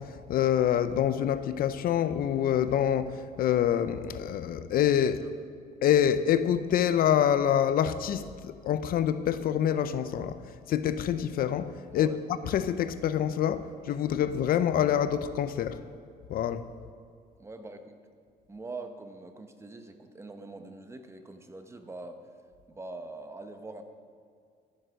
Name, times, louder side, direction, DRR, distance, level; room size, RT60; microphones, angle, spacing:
voice 1, 0.0-5.2 5.8-12.1 12.4-15.8 16.3-16.7, left 9 dB, 65° left, 0.6 m, -26 dB
voice 2, 17.4-18.0 18.5-22.2 22.7-23.8, right 2 dB, 15° right, 0.9 m, -43 dB
12.5 x 9.5 x 6.3 m
cardioid pair, 130°, 16 cm